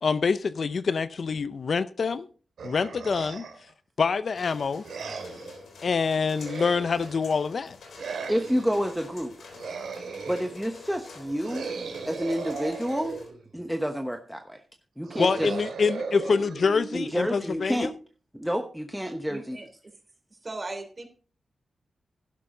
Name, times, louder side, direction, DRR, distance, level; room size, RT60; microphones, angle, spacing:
voice 1, 0.0-2.3 2.6-3.5 4.0-4.8 5.8-7.8 15.2-17.9, left 5 dB, 60° left, 0.6 m, -26 dB
sound 1, 2.6-3.7 4.8-5.6 6.3-7.3 8.0-8.8 9.5-10.6 11.4-13.5 15.0-17.4, right 4 dB, 85° right, 2.4 m, -37 dB
sound 2, 4.3-13.3, left 4 dB, 80° left, 3.6 m, -48 dB
voice 2, 8.3-9.5 10.3-11.7 12.0-13.2 13.5-14.6 15.0-15.5 16.9-17.9 18.3-19.6, equal, 5° right, 1.1 m, -29 dB
voice 3, 19.3-19.7 20.3-21.1, right 2 dB, 35° right, 3.3 m, -37 dB
11.5 x 11.5 x 3.8 m
cardioid pair, 75°, 0 cm